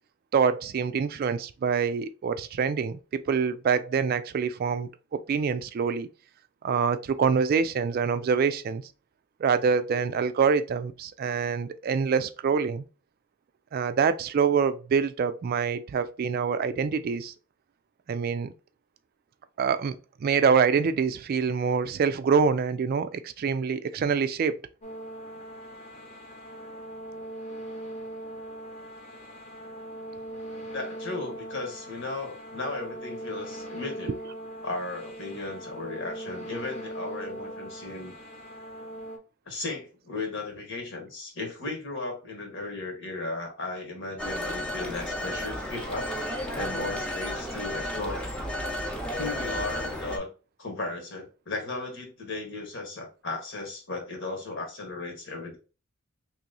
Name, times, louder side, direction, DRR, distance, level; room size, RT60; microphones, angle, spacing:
voice 1, 0.3-4.9 5.3-6.1 6.6-8.8 9.4-12.8 13.7-17.3 18.1-18.5 19.6-20.0 20.2-24.6, right 6 dB, 45° right, 0.3 m, -25 dB
sound 1, 24.8-39.2, right 1 dB, 35° left, 0.9 m, -40 dB
voice 2, 30.7-34.1 34.6-38.1 39.5-46.1 46.5-48.3 49.2-50.3 50.6-55.6, left 3 dB, 60° left, 1.3 m, -35 dB
Telephone, 44.2-50.2, equal, 5° left, 0.7 m, -33 dB
3.0 x 2.9 x 3.8 m
head